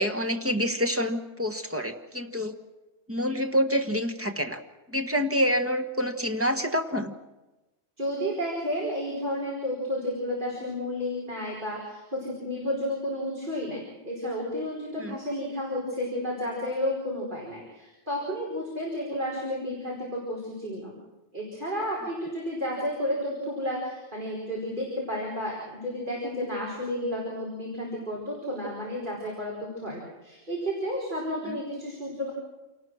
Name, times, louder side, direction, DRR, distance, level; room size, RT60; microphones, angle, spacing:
voice 1, 0.0-2.5 3.1-4.6 4.9-7.1 15.0-15.2 31.5-31.6, equal, 10° right, 5 dB, 1.3 m, -27 dB
voice 2, 8.0-21.0 21.3-32.3, equal, 45° right, -4 dB, 5.1 m, -32 dB
28.0 x 19.0 x 6.3 m, 1.1 s
omnidirectional pair, 1.2 m